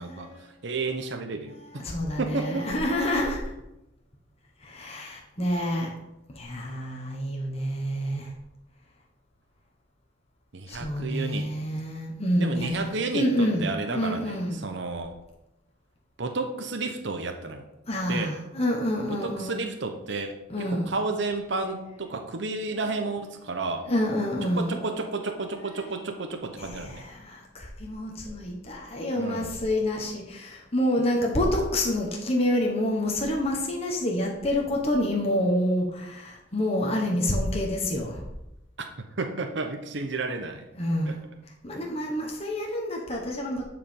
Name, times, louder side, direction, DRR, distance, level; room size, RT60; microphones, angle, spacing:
voice 1, 0.0-0.5 1.7-3.4 4.6-5.9 6.3-8.3 10.7-12.9 13.1-14.7 17.9-19.6 20.5-20.9 23.9-24.8 26.6-38.2 40.8-41.2 41.6-43.6, left 1 dB, 30° left, 0 dB, 1.3 m, -28 dB
voice 2, 0.6-1.8 2.2-2.7 5.4-5.5 10.5-11.5 12.4-15.1 16.2-17.6 18.1-18.4 19.1-23.9 24.5-27.0 29.2-29.5 39.2-40.7 41.1-41.2, right 3 dB, 65° right, 5 dB, 0.9 m, -32 dB
10.0 x 5.0 x 5.3 m, 0.92 s
head